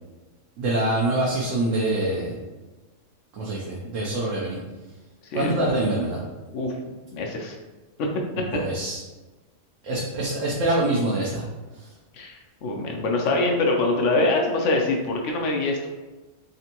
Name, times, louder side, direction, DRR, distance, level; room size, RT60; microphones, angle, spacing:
voice 1, 0.6-2.4 3.3-4.6 5.3-6.2 8.5-9.0 9.8-11.5 11.8-11.9, right 1 dB, 90° right, -4 dB, 1.1 m, -25 dB
voice 2, 5.2-5.6 6.5-6.7 7.1-7.5 8.0-8.1 8.4-8.6 12.1-15.9, left 2 dB, 80° left, 2 dB, 0.9 m, -24 dB
3.8 x 3.4 x 2.9 m, 1.2 s
omnidirectional pair, 1.3 m